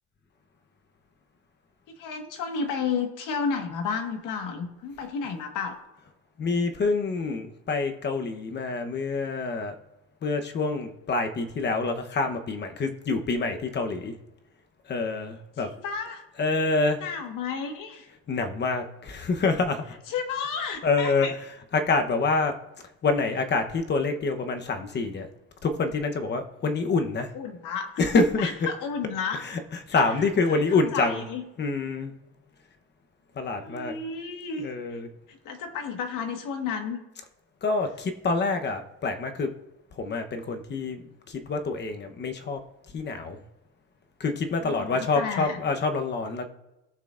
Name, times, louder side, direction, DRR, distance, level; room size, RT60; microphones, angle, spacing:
voice 1, 2.0-5.8 15.6-16.2 17.0-18.1 20.1-21.3 27.3-28.0 28.4-29.6 29.9-30.1 30.5-31.4 33.5-34.7 35.3-37.0 44.6-45.6, left 5 dB, 70° left, 4 dB, 1.6 m, -32 dB
voice 2, 6.4-9.7 10.2-14.2 14.9-15.7 16.4-17.0 18.3-19.9 20.8-21.3 21.7-22.6 23.0-25.3 25.6-27.3 28.0-28.5 29.4-31.2 31.6-32.1 33.4-33.9 34.6-35.1 37.6-39.5 40.0-42.6 42.9-43.4 44.2-46.5, left 3 dB, 30° left, 6 dB, 0.9 m, -26 dB
18.5 x 6.6 x 2.5 m, 0.95 s
cardioid pair, 145°, 33 cm